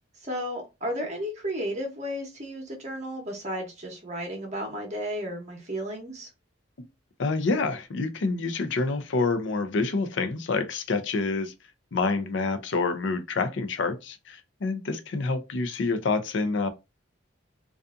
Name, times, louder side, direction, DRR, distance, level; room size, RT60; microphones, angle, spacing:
voice 1, 0.2-6.3, equal, 35° right, 0.8 m, -33 dB
voice 2, 7.2-11.5 11.9-16.7, left 3 dB, 70° left, 0.5 m, -27 dB
2.6 x 2.4 x 2.3 m
head